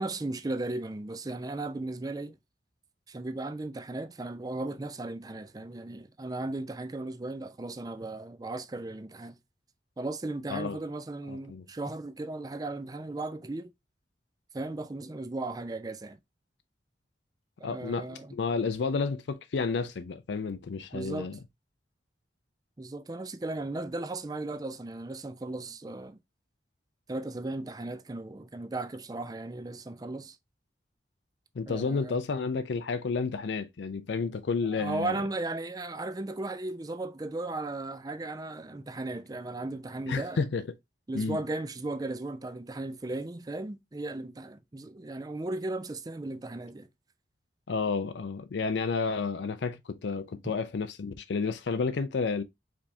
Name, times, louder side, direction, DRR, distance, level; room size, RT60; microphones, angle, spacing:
voice 1, 0.0-2.4 3.1-9.4 10.0-13.7 14.5-16.2 17.6-18.4 20.9-21.3 22.8-26.2 27.1-30.4 31.7-32.2 34.7-40.5 41.1-46.9, right 2 dB, 20° right, 0.4 m, -36 dB
voice 2, 11.3-11.6 17.6-21.3 31.6-35.1 40.1-40.6 41.1-41.4 47.7-52.4, left 4 dB, 85° left, 0.5 m, -31 dB
5.0 x 3.4 x 2.6 m
head